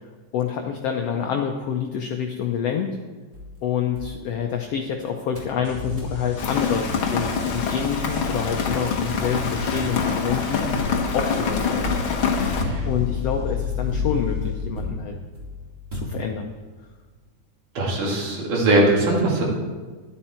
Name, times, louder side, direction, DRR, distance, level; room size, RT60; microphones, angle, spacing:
voice 1, 0.3-3.0 3.6-12.0 12.8-15.1 15.9-16.5, left 8 dB, 80° left, 3 dB, 1.4 m, -27 dB
sound 1, 3.3-4.9 5.3-5.6 6.0-6.2 6.7-6.8 7.0-8.1 9.1-16.7, left 1 dB, 20° right, 2.6 m, -35 dB
sound 2, 5.6-14.6, left 5 dB, 25° left, 1.6 m, -32 dB
Rain, 6.4-12.6, left 5 dB, 55° left, 1.6 m, -25 dB
voice 2, 17.8-19.4, right 1 dB, 75° right, -3 dB, 3.9 m, -20 dB
12.5 x 11.0 x 4.4 m, 1.4 s
omnidirectional pair, 3.7 m